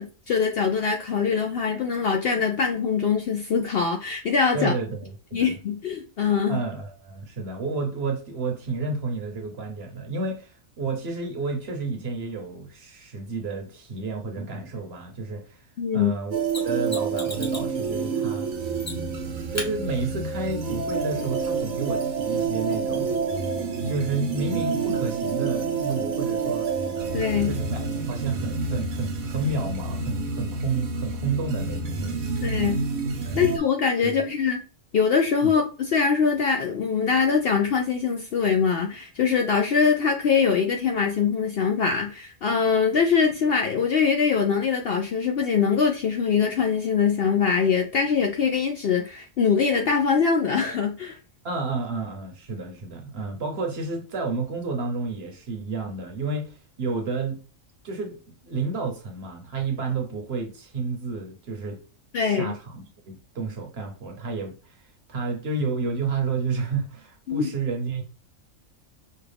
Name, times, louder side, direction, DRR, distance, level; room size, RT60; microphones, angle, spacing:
voice 1, 0.0-4.7 5.3-6.6 15.8-16.1 27.1-27.5 32.4-32.8 33.3-34.6 34.9-51.2 62.1-62.5 67.3-67.5, left 6 dB, 65° left, 0.6 m, -23 dB
voice 2, 4.5-5.5 6.5-15.6 15.9-18.5 19.5-23.2 23.8-26.7 27.5-27.8 28.1-32.5 33.2-33.5 34.0-34.2 35.4-35.5 51.4-57.4 57.8-61.8 62.2-68.0, right 4 dB, 55° right, 1.0 m, -31 dB
sound 1, 16.3-33.6, right 4 dB, 85° right, 1.2 m, -28 dB
Mechanisms, 16.5-17.7 18.8-19.2 19.5-19.7 22.5-22.6, left 1 dB, 15° left, 0.8 m, -35 dB
5.5 x 2.3 x 3.3 m
omnidirectional pair, 1.4 m